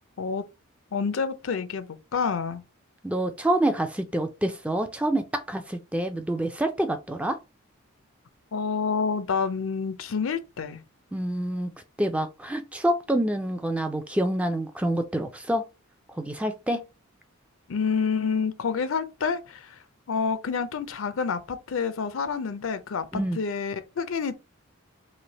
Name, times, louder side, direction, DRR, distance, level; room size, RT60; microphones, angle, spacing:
voice 1, 0.9-2.6 8.5-10.8 17.7-19.8 20.1-23.1 23.4-24.3, left 5 dB, 70° left, 0.5 m, -28 dB
voice 2, 3.0-7.4 11.1-11.7 12.0-15.6 16.1-16.8 23.1-23.4, right 1 dB, 5° right, 0.3 m, -27 dB
3.2 x 2.5 x 3.9 m
head